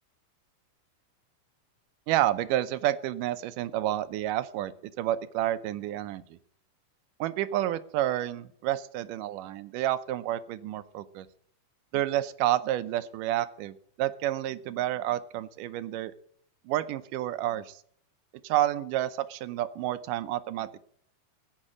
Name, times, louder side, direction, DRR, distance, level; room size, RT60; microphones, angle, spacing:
voice 1, 2.1-4.7 5.0-6.4 7.2-11.3 11.9-16.1 16.7-17.8 18.4-20.8, right 13 dB, 80° right, 13 dB, 2.2 m, -29 dB
15.0 x 6.5 x 9.7 m, 0.66 s
omnidirectional pair, 3.8 m